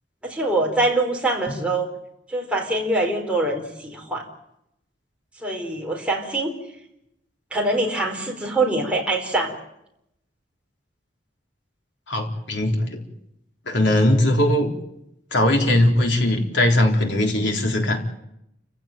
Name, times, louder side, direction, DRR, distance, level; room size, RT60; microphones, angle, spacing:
voice 1, 0.2-1.9 2.3-4.2 5.4-6.5 7.5-9.5, right 2 dB, 5° right, 0 dB, 4.4 m, -24 dB
voice 2, 12.1-13.0 13.7-14.7 15.3-18.0, left 1 dB, 70° left, 2 dB, 3.9 m, -20 dB
29.5 x 16.0 x 9.2 m, 0.83 s
head